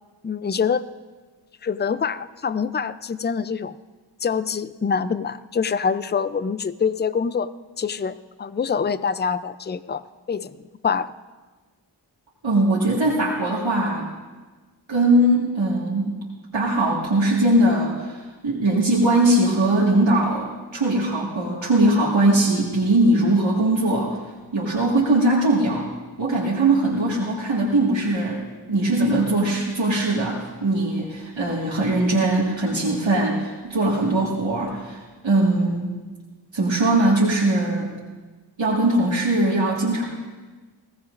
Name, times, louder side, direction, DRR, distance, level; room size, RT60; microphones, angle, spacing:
voice 1, 0.2-0.8 1.6-3.8 4.2-7.5 7.8-10.0 10.3-10.6 10.8-11.1, left 6 dB, 25° left, 14 dB, 0.4 m, -25 dB
voice 2, 12.4-14.1 14.9-16.1 16.5-20.5 20.7-24.2 24.5-25.9 26.2-35.9 36.5-37.9 38.6-40.0, right 1 dB, 85° right, -5 dB, 1.8 m, -20 dB
20.5 x 17.0 x 2.5 m, 1.3 s
wide cardioid pair, 65°, 44 cm